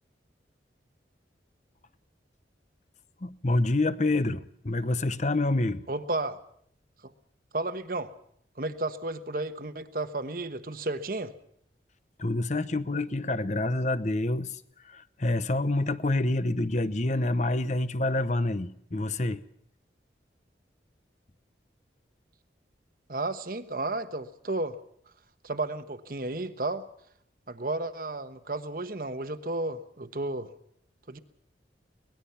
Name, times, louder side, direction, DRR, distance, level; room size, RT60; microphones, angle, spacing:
voice 1, 3.2-5.8 12.2-19.4, left 2 dB, 40° left, 14 dB, 0.9 m, -27 dB
voice 2, 5.9-6.4 7.0-7.1 7.5-8.1 8.6-11.3 23.1-24.8 25.4-26.8 27.5-30.5 31.1-31.2, right 2 dB, 50° right, 10 dB, 1.2 m, -32 dB
23.5 x 19.5 x 5.7 m, 0.68 s
head